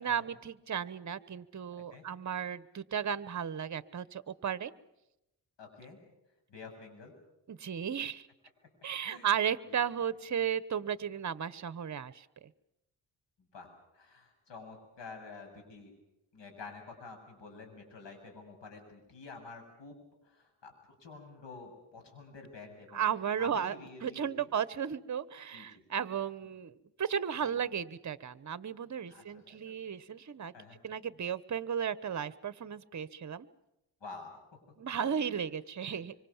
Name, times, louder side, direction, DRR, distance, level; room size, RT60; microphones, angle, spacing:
voice 1, 0.0-4.7 7.5-8.2 8.8-12.2 22.9-23.7 24.0-30.5 30.8-33.5 34.8-36.1, right 8 dB, 40° right, 17 dB, 1.0 m, -34 dB
voice 2, 5.6-6.0 6.5-7.1 9.0-9.4 9.7-9.8 13.4-15.9 16.3-20.0 20.2-20.7 21.0-23.0 23.4-24.5 25.5-25.8 27.4-27.5 29.1-29.7 30.5-30.8 34.0-34.4 35.0-35.4 35.8-36.0, left 4 dB, 70° left, 4 dB, 7.7 m, -49 dB
25.0 x 25.0 x 7.2 m, 0.90 s
cardioid pair, 90°, 45 cm